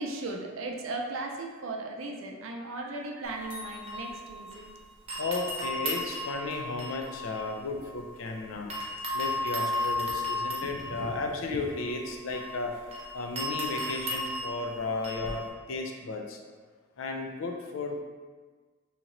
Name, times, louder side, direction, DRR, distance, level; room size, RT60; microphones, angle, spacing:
voice 1, 0.0-4.7 5.6-5.7 7.7-7.8 8.6-8.7 10.7-11.6, right 2 dB, 85° right, 2 dB, 0.5 m, -37 dB
sound 1, 3.2-4.7 5.1-8.3 8.7-15.5, left 1 dB, 30° right, 0.7 m, -35 dB
sound 2, 3.5-5.1, left 1 dB, 60° left, 1.2 m, -50 dB
voice 2, 5.2-8.7 9.1-12.7 13.1-16.4 17.0-18.0, left 3 dB, 75° left, 2 dB, 0.5 m, -34 dB
2.9 x 2.9 x 3.8 m, 1.4 s
head